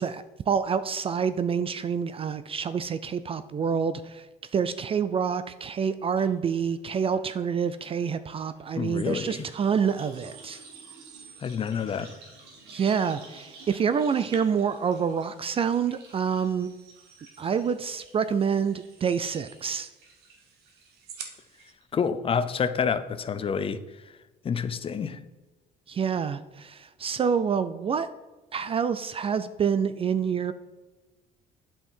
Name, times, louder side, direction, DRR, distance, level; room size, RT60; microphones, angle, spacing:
voice 1, 0.0-4.3 4.5-10.6 12.7-16.7 17.4-19.9 25.9-28.1 28.5-30.5, right 6 dB, 35° right, 13 dB, 0.4 m, -27 dB
sound 1, 6.2-6.3 6.6-21.2 21.6-22.1 22.3-22.4, right 3 dB, 90° right, 2.5 m, -53 dB
voice 2, 8.8-9.4 11.4-12.1 21.9-23.8 24.4-25.2, left 6 dB, 35° left, 13 dB, 0.6 m, -28 dB
sound 2, 8.9-21.7, right 6 dB, 70° right, 1.3 m, -50 dB
8.3 x 5.7 x 4.4 m, 1.2 s
cardioid pair, 110°, 17 cm